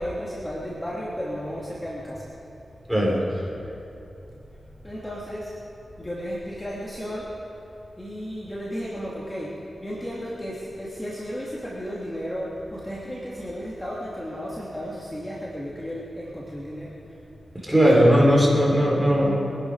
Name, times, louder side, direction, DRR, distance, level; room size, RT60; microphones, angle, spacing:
voice 1, 0.0-2.3 2.7-2.8 4.4-5.6 6.0-7.3 8.0-17.2 17.8-18.0, equal, 15° left, -6 dB, 2.9 m, -34 dB
voice 2, 2.9-3.2 17.6-19.3, equal, 5° right, -3 dB, 4.8 m, -18 dB
24.5 x 11.5 x 5.1 m, 2.8 s
cardioid pair, 60°, 0 cm